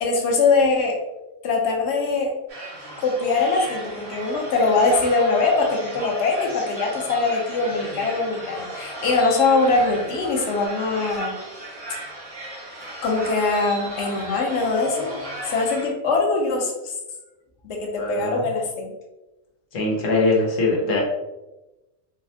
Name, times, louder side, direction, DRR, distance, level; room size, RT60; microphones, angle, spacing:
voice 1, 0.0-1.0 1.4-2.3 3.0-11.3 11.9-12.0 13.0-15.1 15.4-16.9 17.6-18.9, left 3 dB, 65° left, 1 dB, 0.9 m, -22 dB
sound 1, 2.5-15.9, right 1 dB, 90° right, 1.7 m, -35 dB
voice 2, 17.9-18.4 19.7-21.0, left 2 dB, 90° left, -2 dB, 1.2 m, -22 dB
3.9 x 2.1 x 2.6 m, 1.0 s
omnidirectional pair, 1.3 m